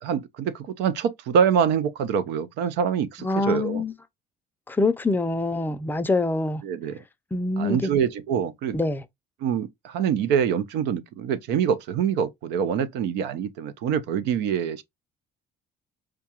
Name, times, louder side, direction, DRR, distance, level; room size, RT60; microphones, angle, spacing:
voice 1, 0.0-3.8 6.6-7.0 7.6-8.8 9.4-14.8, right 7 dB, 90° right, 0.5 m, -25 dB
voice 2, 3.2-3.9 4.7-6.6 7.3-7.9 8.7-9.0, left 2 dB, 10° left, 0.4 m, -25 dB
4.9 x 2.3 x 2.8 m
cardioid pair, 110°, 17 cm